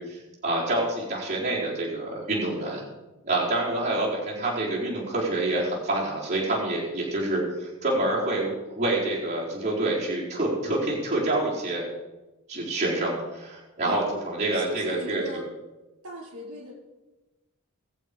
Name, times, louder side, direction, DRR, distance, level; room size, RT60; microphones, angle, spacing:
voice 1, 0.0-2.8 3.2-11.9 12.5-15.2, right 2 dB, 30° right, -7 dB, 4.5 m, -27 dB
voice 2, 13.8-14.2 14.5-15.5 16.0-16.7, equal, 75° right, -2 dB, 5.0 m, -36 dB
21.5 x 7.5 x 5.3 m, 1.1 s
head